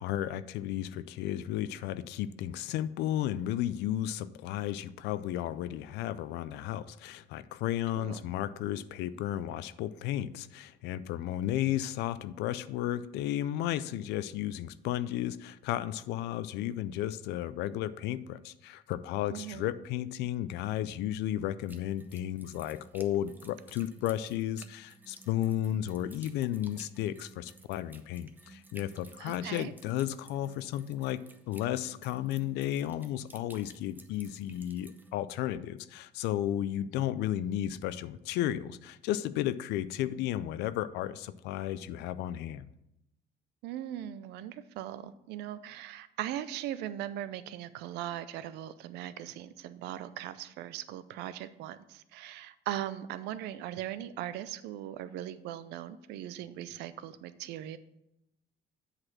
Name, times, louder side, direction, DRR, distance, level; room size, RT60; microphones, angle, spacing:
voice 1, 0.0-42.7, left 12 dB, 85° left, 15 dB, 0.4 m, -33 dB
voice 2, 19.3-19.7 29.2-29.7 43.6-57.8, right 12 dB, 85° right, 14 dB, 0.5 m, -39 dB
sound 1, 21.7-35.1, right 2 dB, 10° right, 0.7 m, -55 dB
7.8 x 4.2 x 5.9 m, 0.85 s
cardioid pair, 110°, 17 cm